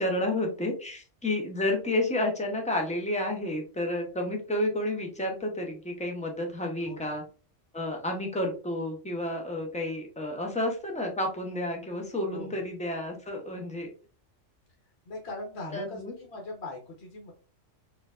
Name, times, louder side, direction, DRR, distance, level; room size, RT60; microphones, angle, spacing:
voice 1, 0.0-7.2 7.7-13.9 15.7-16.1, left 1 dB, 10° left, 2 dB, 0.4 m, -30 dB
voice 2, 6.8-7.1 12.3-12.6 15.0-17.3, left 2 dB, 60° left, 0 dB, 1.1 m, -40 dB
4.3 x 2.6 x 2.3 m, 0.36 s
omnidirectional pair, 1.3 m